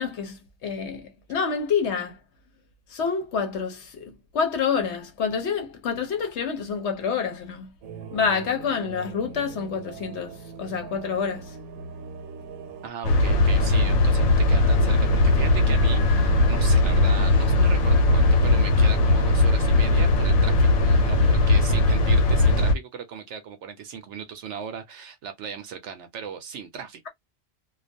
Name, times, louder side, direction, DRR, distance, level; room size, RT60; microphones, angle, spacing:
voice 1, 0.0-2.2 2.9-7.7 8.1-11.6, left 6 dB, 65° left, 0.8 m, -28 dB
sound 1, 7.8-12.9, right 5 dB, 80° right, 1.1 m, -41 dB
voice 2, 12.8-27.1, right 7 dB, 65° right, 0.8 m, -37 dB
sound 2, 13.0-22.7, left 2 dB, 85° left, 1.0 m, -19 dB
2.3 x 2.2 x 2.5 m
omnidirectional pair, 1.4 m